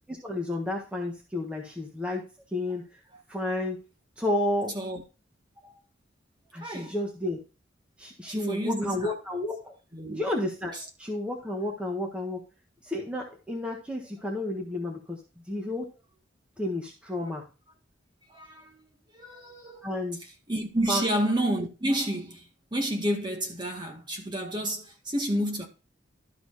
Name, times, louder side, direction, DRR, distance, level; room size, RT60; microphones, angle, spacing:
voice 1, 0.1-2.3 2.5-2.8 3.3-3.8 4.2-4.7 6.5-7.4 8.0-9.7 10.1-10.7 11.0-12.4 12.8-15.2 15.5-15.9 16.6-17.4 19.8-20.2 20.9-21.0, left 1 dB, 5° right, 1.4 m, -31 dB
voice 2, 6.6-6.9 8.3-9.2 9.9-10.2 18.3-18.8 19.1-19.9 20.5-25.7, right 1 dB, 25° right, 1.7 m, -30 dB
12.5 x 4.4 x 4.1 m
head